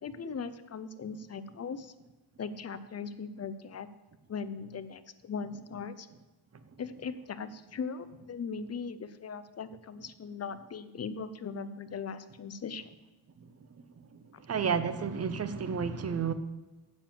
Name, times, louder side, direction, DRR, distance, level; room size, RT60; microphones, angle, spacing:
voice 1, 0.0-1.9 2.4-3.9 4.3-6.1 6.8-12.9 14.3-14.4, left 5 dB, 35° left, 12 dB, 0.5 m, -39 dB
voice 2, 14.5-16.3, right 6 dB, 30° right, 11 dB, 0.6 m, -30 dB
7.4 x 7.1 x 7.4 m, 1.2 s
wide cardioid pair, 160°, 49 cm